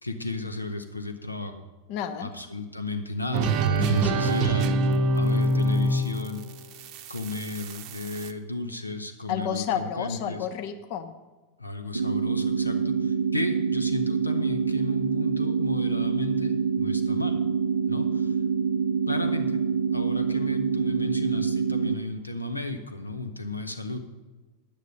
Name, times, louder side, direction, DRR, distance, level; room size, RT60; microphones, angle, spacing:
voice 1, 0.0-1.6 2.2-3.5 3.8-6.4 7.1-10.5 11.6-17.4 17.9-18.4 19.1-19.6 19.9-24.0, left 2 dB, 80° left, 8 dB, 0.8 m, -34 dB
voice 2, 1.9-2.3 3.8-4.3 9.3-11.1, left 8 dB, 45° left, 8 dB, 0.9 m, -31 dB
sound 1, 3.3-8.3, right 2 dB, 40° right, 0.7 m, -25 dB
sound 2, 11.9-21.9, right 6 dB, 80° right, 0.5 m, -26 dB
10.5 x 9.2 x 5.4 m, 1.3 s
figure-of-eight pair, 90°, 0 cm